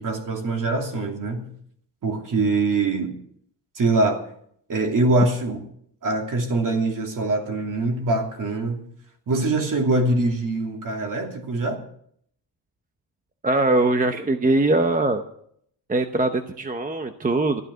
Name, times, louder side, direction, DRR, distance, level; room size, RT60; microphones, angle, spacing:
voice 1, 0.0-1.5 2.0-3.1 3.7-4.2 4.7-5.6 6.0-8.8 9.3-11.7, right 2 dB, 45° right, 2 dB, 2.8 m, -23 dB
voice 2, 13.4-15.2 15.9-17.6, right 2 dB, 20° right, 6 dB, 0.8 m, -21 dB
13.5 x 12.0 x 6.3 m, 0.67 s
wide cardioid pair, 150°, 43 cm